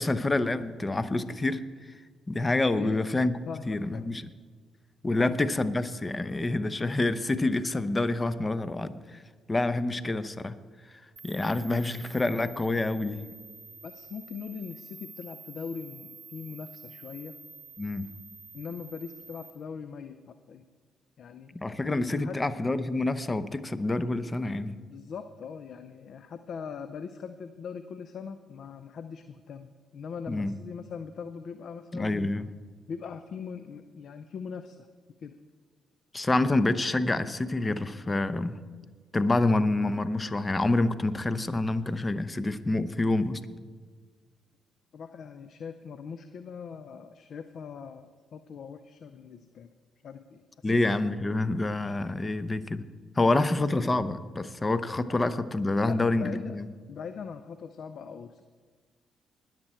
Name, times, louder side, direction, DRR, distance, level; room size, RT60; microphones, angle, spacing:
voice 1, 0.0-1.6 2.3-3.4 3.7-4.3 5.0-9.2 9.5-10.5 11.2-13.2 17.8-18.1 21.5-24.8 30.3-30.5 31.9-32.5 36.1-38.6 39.1-43.4 50.6-52.8 53.2-56.7, left 2 dB, 25° left, 13 dB, 0.8 m, -27 dB
voice 2, 2.7-3.1 3.5-4.1 5.2-5.3 13.8-17.4 18.5-20.6 21.2-21.5 21.9-22.4 24.9-32.3 32.9-34.8 35.2-35.3 44.9-49.7 50.0-50.8 55.0-55.2 55.8-56.6 56.9-58.4, left 6 dB, 60° left, 11 dB, 0.5 m, -41 dB
sound 1, 11.2-19.5, right 4 dB, 40° right, 0.9 m, -49 dB
20.5 x 7.6 x 4.4 m, 1.5 s
hypercardioid pair, 45°, 0 cm